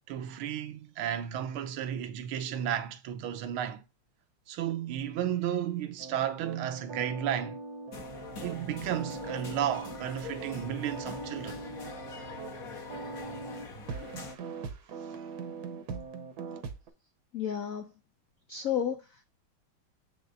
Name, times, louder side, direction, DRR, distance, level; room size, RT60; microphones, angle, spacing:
voice 1, 0.1-3.8 4.5-7.6 8.4-11.6, right 10 dB, 90° right, 1.6 m, -33 dB
sound 1, 6.0-16.9, right 4 dB, 60° right, 1.2 m, -41 dB
sound 2, 7.9-14.4, left 5 dB, 50° left, 1.5 m, -44 dB
voice 2, 17.3-17.9 18.5-19.2, left 9 dB, 85° left, 0.7 m, -32 dB
7.2 x 6.7 x 2.6 m
omnidirectional pair, 2.3 m